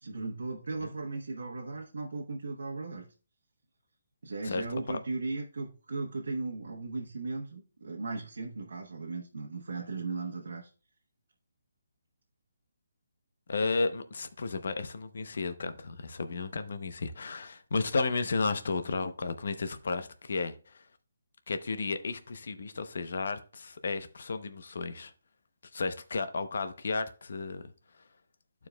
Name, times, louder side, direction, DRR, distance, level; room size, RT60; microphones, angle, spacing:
voice 1, 0.0-3.1 4.2-10.7, right 3 dB, 80° right, 1.0 m, -37 dB
voice 2, 4.4-5.0 13.5-20.8 21.5-25.1 25.7-27.6, left 4 dB, 60° left, 0.7 m, -33 dB
13.5 x 4.7 x 2.2 m
hypercardioid pair, 170°, 0 cm